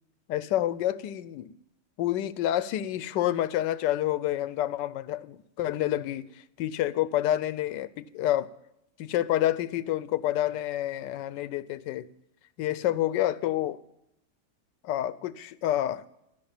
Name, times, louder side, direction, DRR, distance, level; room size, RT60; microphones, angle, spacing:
voice 1, 0.3-1.6 2.0-8.5 9.0-12.1 12.6-13.8 14.8-16.0, left 13 dB, 90° left, 1.3 m, -28 dB
14.5 x 6.6 x 8.8 m
omnidirectional pair, 1.8 m